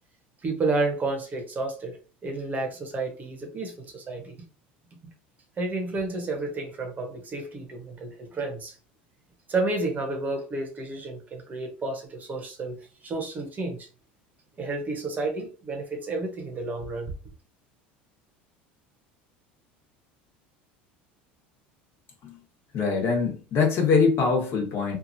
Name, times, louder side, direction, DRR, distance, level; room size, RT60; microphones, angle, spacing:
voice 1, 0.4-4.4 5.6-8.8 9.5-12.8 13.0-13.9 14.6-17.1, right 2 dB, 30° right, 0.9 m, -31 dB
voice 2, 22.7-25.0, left 5 dB, 50° left, 1.2 m, -23 dB
2.9 x 2.4 x 2.6 m
hypercardioid pair, 90°, 5 cm